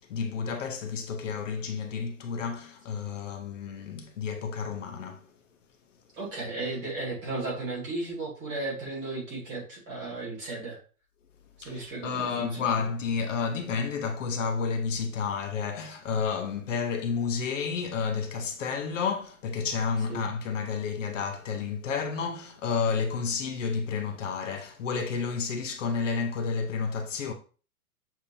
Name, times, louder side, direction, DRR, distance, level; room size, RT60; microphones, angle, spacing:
voice 1, 0.0-5.3 11.6-27.3, left 5 dB, 50° left, 0.7 m, -31 dB
voice 2, 6.1-10.8 11.6-12.8 20.1-20.2, right 3 dB, 15° right, 1.1 m, -35 dB
6.9 x 2.7 x 2.6 m
supercardioid pair, 175°, 48 cm